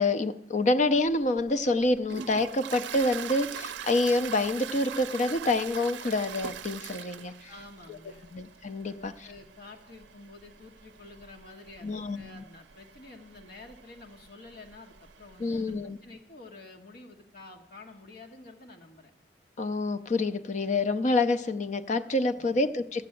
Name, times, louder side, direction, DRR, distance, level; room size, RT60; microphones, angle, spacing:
voice 1, 0.0-7.5 7.9-8.0 8.3-9.3 11.8-12.4 15.4-16.0 19.6-23.1, left 2 dB, 45° left, 10 dB, 0.5 m, -27 dB
Toilet flush, 1.1-15.8, right 8 dB, 90° right, 0.4 m, -43 dB
voice 2, 7.5-8.3 8.8-19.1 22.4-22.6, left 2 dB, 60° left, 2 dB, 1.3 m, -49 dB
14.0 x 7.7 x 7.7 m, 0.84 s
head